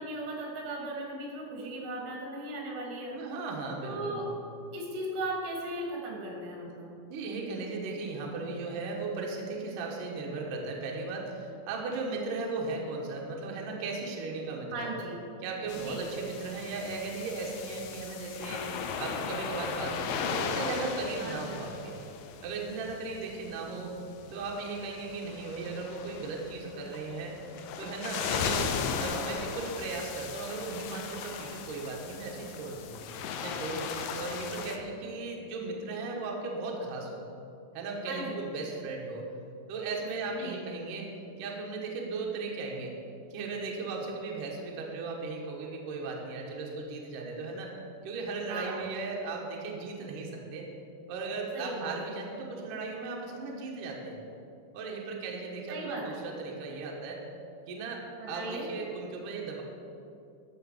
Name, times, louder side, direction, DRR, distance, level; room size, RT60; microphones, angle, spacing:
voice 1, 0.0-3.2 3.8-4.3 4.7-6.9 14.7-15.2 15.8-16.0 21.2-21.7 28.1-28.5 38.1-38.4 40.3-40.6 48.5-48.8 51.5-51.9 55.7-56.2 58.2-58.7, right 2 dB, 90° right, 0 dB, 4.5 m, -37 dB
voice 2, 3.1-4.3 7.1-14.9 15.4-18.7 19.0-22.0 22.4-23.9 24.3-27.4 27.8-28.7 29.0-33.0 33.4-37.2 37.7-39.2 39.7-41.1 41.4-42.9 43.3-47.7 48.0-50.7 51.1-54.2 54.7-57.2 57.7-59.6, right 3 dB, 60° right, -1 dB, 2.5 m, -36 dB
sound 1, 15.7-34.8, left 6 dB, 85° left, 3.1 m, -37 dB
13.5 x 5.9 x 7.2 m, 2.6 s
omnidirectional pair, 5.3 m